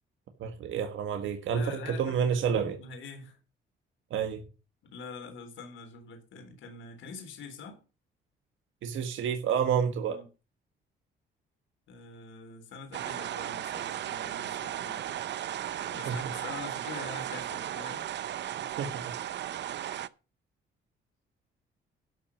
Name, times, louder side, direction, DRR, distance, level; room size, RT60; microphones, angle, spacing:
voice 1, 0.4-2.8 4.1-4.4 8.8-10.2 16.1-16.2 18.8-18.9, right 7 dB, 80° right, 1.6 m, -29 dB
voice 2, 1.5-3.4 4.8-7.8 10.1-10.3 11.9-15.3 15.9-18.1, left 4 dB, 75° left, 3.7 m, -45 dB
sound 1, 12.9-20.1, right 11 dB, 60° right, 0.7 m, -36 dB
12.5 x 6.1 x 7.1 m
cardioid pair, 90°, 20 cm